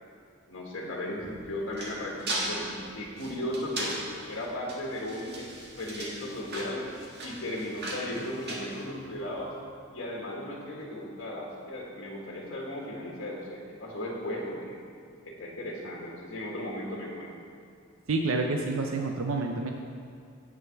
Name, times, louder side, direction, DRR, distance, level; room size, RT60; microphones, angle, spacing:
voice 1, 0.5-4.0 4.3-5.5 5.8-6.9 7.2-9.5 9.9-14.8 15.2-17.4, left 1 dB, 65° left, -2 dB, 1.5 m, -36 dB
sound 1, 1.2-9.4, right 1 dB, 55° right, 1.8 m, -38 dB
voice 2, 18.1-19.7, right 3 dB, 75° right, 3 dB, 0.6 m, -28 dB
9.1 x 6.7 x 5.8 m, 2.4 s
head